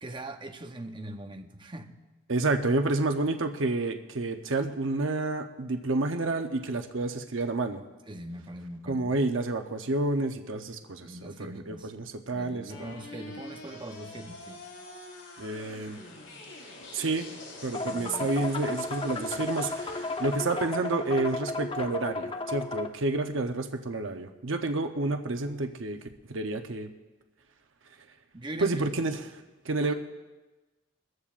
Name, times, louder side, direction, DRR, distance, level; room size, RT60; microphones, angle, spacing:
voice 1, 0.0-2.0 8.1-9.2 11.0-11.9 12.3-14.6 17.8-18.3 28.3-29.0 29.8-29.9, right 1 dB, 25° right, 5 dB, 0.8 m, -41 dB
voice 2, 2.3-7.8 8.9-12.9 15.4-16.0 16.9-17.3 17.6-26.0 26.3-26.9 28.6-29.2 29.6-29.9, right 2 dB, 80° right, 6 dB, 0.8 m, -29 dB
sound 1, 12.7-22.7, left 2 dB, 70° left, 3.7 m, -47 dB
sound 2, 17.7-22.9, left 3 dB, 25° left, 0.7 m, -34 dB
22.5 x 14.0 x 2.5 m, 1.1 s
head